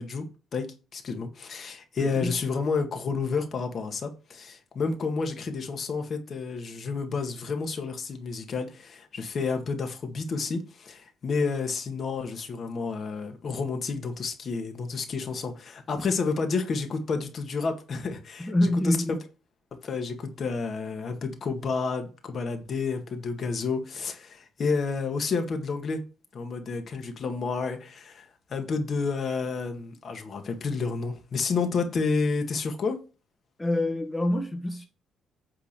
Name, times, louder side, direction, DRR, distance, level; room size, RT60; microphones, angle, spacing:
voice 1, 0.0-18.5 18.8-19.2 19.8-26.0 26.3-33.0, left 4 dB, 50° left, 1.7 m, -30 dB
voice 2, 2.0-2.3 18.4-19.1 33.6-34.9, left 1 dB, 20° left, 1.7 m, -26 dB
8.9 x 3.7 x 6.7 m
cardioid pair, 90°, 0 cm